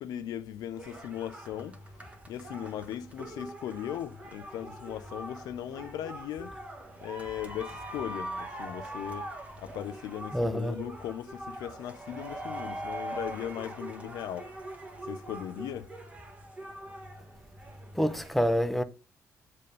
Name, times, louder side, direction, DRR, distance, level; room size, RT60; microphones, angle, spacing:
voice 1, 0.0-1.8 2.3-6.6 7.0-9.3 9.6-14.5 15.1-15.9, left 11 dB, 75° left, 0.5 m, -38 dB
sound 1, 0.7-18.3, right 1 dB, 20° right, 1.6 m, -42 dB
voice 2, 10.3-10.8 17.9-18.8, equal, ahead, 0.7 m, -27 dB
6.7 x 3.5 x 5.2 m
supercardioid pair, 80°, 7 cm